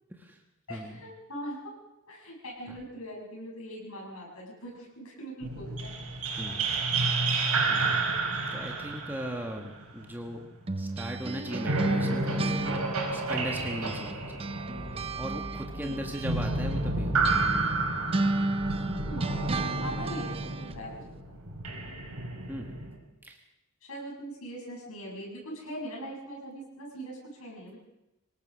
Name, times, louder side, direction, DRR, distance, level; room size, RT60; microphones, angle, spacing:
voice 1, 0.7-1.7 2.1-5.9 15.8-16.1 19.1-19.5 19.8-21.4 23.8-27.8, equal, 75° left, -3 dB, 7.2 m, -41 dB
sound 1, 5.4-10.5 11.5-23.0, right 3 dB, 75° right, 5.0 m, -31 dB
voice 2, 6.4-7.1 7.7-8.1 8.5-10.4 10.8-12.8 13.1-14.5 14.9-17.4 20.0-20.1 22.5-22.7 23.2-23.4, equal, 10° right, 2 dB, 1.5 m, -38 dB
sound 2, 10.7-14.1 14.4-20.8, right 2 dB, 25° right, 0.7 m, -33 dB
25.0 x 19.0 x 6.3 m, 0.93 s
head